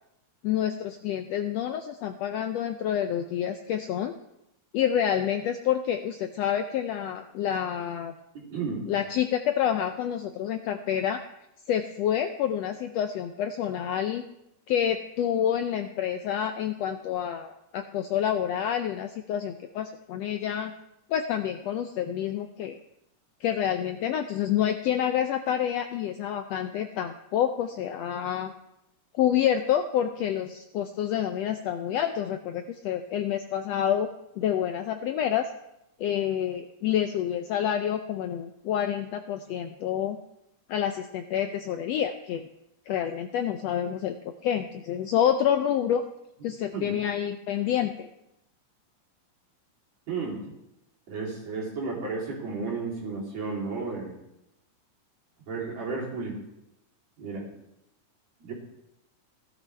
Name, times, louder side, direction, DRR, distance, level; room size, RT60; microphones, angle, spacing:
voice 1, 0.4-4.1 4.7-8.1 8.9-11.2 11.7-14.2 14.7-20.7 21.1-22.8 23.4-28.5 29.2-34.1 34.4-35.5 36.0-40.2 40.7-42.4 42.9-44.2 44.4-46.0 46.4-48.1, left 9 dB, 85° left, 7 dB, 1.4 m, -28 dB
voice 2, 8.3-8.9 46.7-47.0 50.1-50.5 51.1-54.2 55.5-56.4 57.2-57.5 58.4-58.5, right 4 dB, 55° right, -4 dB, 4.4 m, -33 dB
16.0 x 12.5 x 3.4 m, 0.84 s
omnidirectional pair, 3.6 m